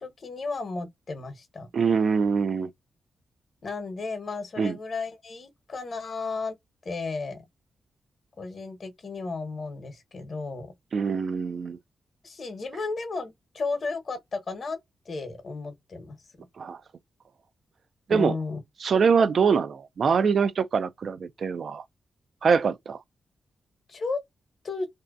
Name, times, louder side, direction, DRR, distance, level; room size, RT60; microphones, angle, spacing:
voice 1, 0.0-1.7 3.6-6.6 6.8-7.4 8.4-10.7 12.2-14.8 15.1-16.2 18.1-18.6 23.9-24.2 24.6-24.9, left 3 dB, 50° left, 0.9 m, -33 dB
voice 2, 1.7-2.7 4.6-4.8 10.9-11.8 16.6-16.8 18.1-18.4 18.8-21.8 22.4-23.0, right 5 dB, 60° right, 0.4 m, -24 dB
2.7 x 2.2 x 2.3 m
cardioid pair, 80°, 0 cm